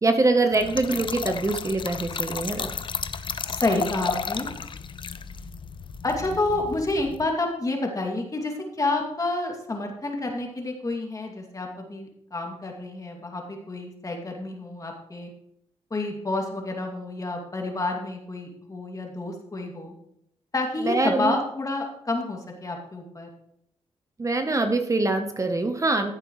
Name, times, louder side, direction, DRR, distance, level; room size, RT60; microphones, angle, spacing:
voice 1, 0.0-2.7 20.8-21.3 24.2-26.1, right 2 dB, 30° right, 6 dB, 0.9 m, -24 dB
Trickle dribble / Fill (with liquid), 0.5-7.3, left 6 dB, 45° left, 0.6 m, -33 dB
voice 2, 3.5-4.5 6.0-15.3 15.9-19.9 20.5-23.3, left 2 dB, 30° left, 2 dB, 2.4 m, -29 dB
15.0 x 7.5 x 3.2 m, 0.73 s
cardioid pair, 75°, 11 cm